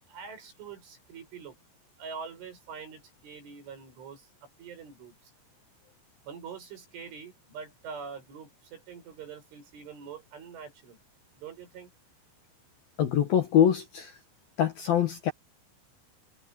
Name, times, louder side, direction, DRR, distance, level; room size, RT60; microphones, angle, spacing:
voice 1, 0.1-1.6 2.0-5.3 6.2-11.0 11.4-11.9, right 6 dB, 65° right, 9.9 m, -44 dB
voice 2, 13.0-14.1 14.6-15.3, left 9 dB, 60° left, 2.7 m, -24 dB
omnidirectional pair, 5.9 m